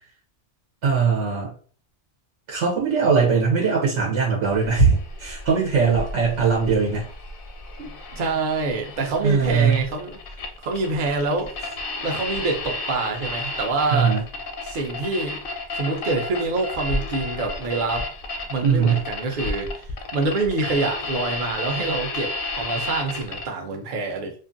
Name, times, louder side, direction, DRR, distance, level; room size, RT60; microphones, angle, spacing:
voice 1, 0.8-1.5 2.5-7.1 9.2-9.8 13.9-14.2 18.6-19.0, right 5 dB, 90° right, -3 dB, 1.1 m, -20 dB
sound 1, 4.4-23.4, left 2 dB, 60° left, 0.6 m, -33 dB
voice 2, 7.8-10.2 10.6-11.5 12.0-14.2 14.6-15.4 15.8-18.1 18.5-19.8 20.1-24.3, right 3 dB, 50° right, 2 dB, 0.7 m, -26 dB
2.5 x 2.5 x 2.5 m, 0.43 s
omnidirectional pair, 1.2 m